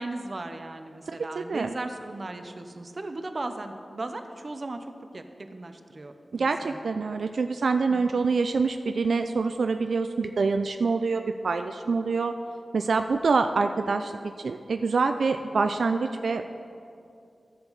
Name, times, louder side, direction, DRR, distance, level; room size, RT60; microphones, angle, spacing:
voice 1, 0.0-4.8 5.1-6.8 7.9-8.1, right 2 dB, 40° right, 7 dB, 0.6 m, -37 dB
voice 2, 1.1-1.7 6.3-12.3 12.7-16.5, right 4 dB, 90° right, 7 dB, 0.3 m, -26 dB
12.5 x 7.1 x 4.0 m, 2.5 s
wide cardioid pair, 100°, 0 cm